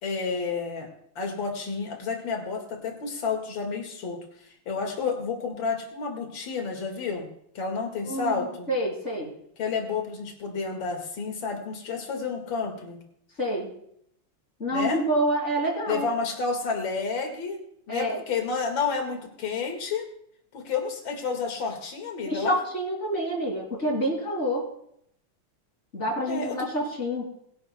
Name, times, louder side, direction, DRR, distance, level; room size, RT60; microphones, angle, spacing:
voice 1, 0.0-0.9 1.2-7.3 7.5-8.7 9.6-13.0 14.7-15.0 15.9-17.6 17.9-20.1 20.5-22.6 26.3-26.7, left 5 dB, 60° left, 3 dB, 2.7 m, -30 dB
voice 2, 8.0-9.3 13.4-13.7 14.6-16.1 17.9-18.2 22.3-24.7 25.9-27.2, equal, 30° left, -1 dB, 3.1 m, -27 dB
22.0 x 11.5 x 2.3 m, 0.71 s
omnidirectional pair, 2.4 m